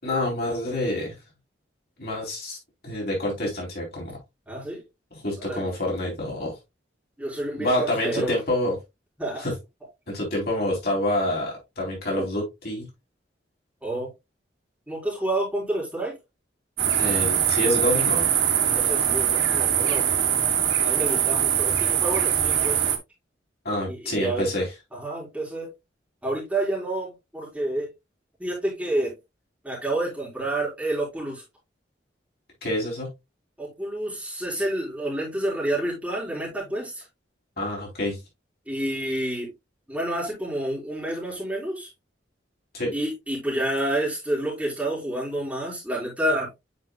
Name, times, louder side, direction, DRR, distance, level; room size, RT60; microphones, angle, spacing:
voice 1, 0.0-1.2 2.0-2.6 2.8-4.2 5.1-6.5 7.6-8.8 9.4-9.5 10.1-12.9 17.0-18.3 23.6-24.7 32.6-33.1 37.6-38.2 42.7-42.9, left 1 dB, 55° left, 3.9 m, -27 dB
voice 2, 4.5-4.8 5.4-5.6 7.2-8.4 9.2-9.5 12.1-12.2 13.8-14.1 14.9-16.1 18.7-20.1 20.8-22.9 23.9-24.5 24.9-25.7 26.2-27.9 28.4-29.1 29.6-31.4 33.6-37.0 38.7-39.5 39.9-41.9 42.9-46.5, right 1 dB, 10° right, 4.0 m, -29 dB
sound 1, 16.8-23.0, right 9 dB, 80° right, 1.5 m, -22 dB
9.4 x 5.3 x 2.3 m
head